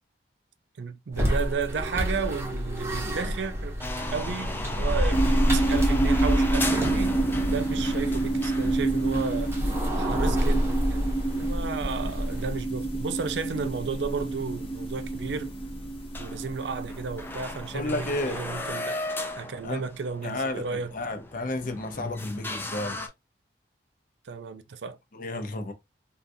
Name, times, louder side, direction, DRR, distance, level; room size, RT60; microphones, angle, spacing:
voice 1, 0.8-3.8 4.1-7.1 7.4-9.5 10.0-15.5 16.2-19.0 19.4-20.9 24.2-25.0, right 5 dB, 80° right, 0.4 m, -33 dB
sound 1, 1.1-12.6, equal, 15° right, 0.8 m, -28 dB
sound 2, 3.8-12.0 12.3-12.4 12.9-13.0 14.0-14.1 14.3-14.4 14.8-14.9 15.3-15.6 15.9-16.0 16.1-23.1, left 2 dB, 10° left, 0.4 m, -36 dB
sound 3, 5.1-18.5, right 2 dB, 30° left, 1.0 m, -29 dB
voice 2, 17.7-18.4 19.6-19.8 20.2-23.1 25.1-25.7, left 2 dB, 50° left, 0.7 m, -32 dB
3.6 x 2.4 x 2.6 m
head